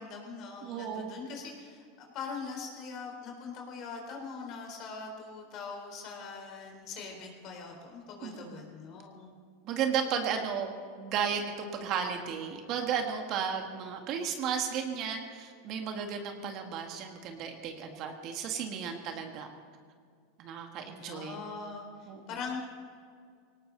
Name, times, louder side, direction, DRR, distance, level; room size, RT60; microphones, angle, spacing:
voice 1, 0.0-9.3 21.0-22.6, left 5 dB, 50° left, 2 dB, 3.9 m, -42 dB
voice 2, 0.6-1.2 8.2-8.6 9.7-10.7 11.0-19.5 20.4-21.4 22.1-22.2, right 7 dB, 50° right, 4 dB, 1.8 m, -34 dB
18.5 x 18.0 x 4.0 m, 2.1 s
hypercardioid pair, 110°, 0 cm